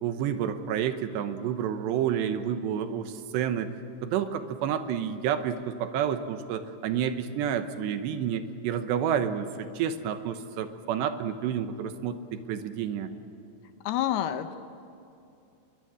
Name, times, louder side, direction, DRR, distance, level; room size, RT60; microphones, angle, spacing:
voice 1, 0.0-3.7 4.0-13.1, right 8 dB, 80° right, 9 dB, 3.1 m, -29 dB
voice 2, 13.9-14.5, left 11 dB, 75° left, 9 dB, 2.6 m, -28 dB
24.5 x 22.0 x 8.8 m, 2.7 s
omnidirectional pair, 5.1 m